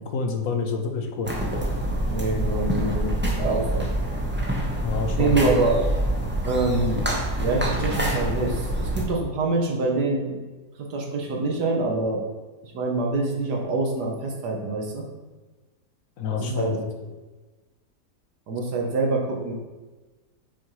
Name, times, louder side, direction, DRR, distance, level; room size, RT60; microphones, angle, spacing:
voice 1, 0.1-1.3 4.8-5.5 16.2-16.8, left 4 dB, 60° left, 4 dB, 1.1 m, -28 dB
sound 1, 1.2-9.0, right 1 dB, 10° right, 0.7 m, -26 dB
voice 2, 2.1-3.9 5.2-5.8 6.5-7.1 7.4-10.4 10.8-12.2 12.6-15.1 16.3-16.8 18.5-19.5, right 3 dB, 75° right, 0 dB, 1.8 m, -25 dB
7.1 x 4.4 x 4.7 m, 1.2 s
omnidirectional pair, 1.8 m